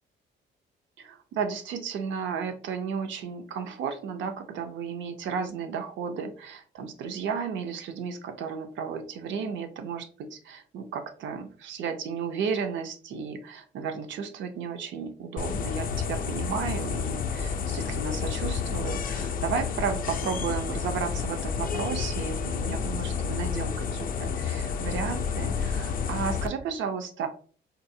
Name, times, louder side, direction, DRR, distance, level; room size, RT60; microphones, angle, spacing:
voice 1, 1.0-27.3, right 6 dB, 70° right, 7 dB, 0.6 m, -33 dB
sound 1, 15.4-26.5, left 6 dB, 45° left, 0.4 m, -30 dB
3.9 x 2.0 x 2.6 m, 0.43 s
cardioid pair, 90°, 20 cm